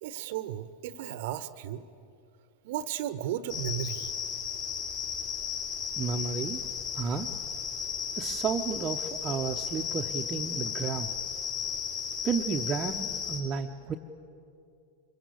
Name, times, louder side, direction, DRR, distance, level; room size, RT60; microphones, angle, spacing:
voice 1, 0.0-1.8 2.6-4.1, right 11 dB, 50° right, 15 dB, 1.1 m, -34 dB
sound 1, 3.5-13.4, left 7 dB, 45° left, 4.9 m, -34 dB
voice 2, 6.0-6.6 6.9-7.3 8.2-11.1 12.2-14.0, right 6 dB, 25° right, 1 dB, 1.0 m, -32 dB
26.0 x 23.0 x 8.4 m, 2.4 s
figure-of-eight pair, 90°, 0 cm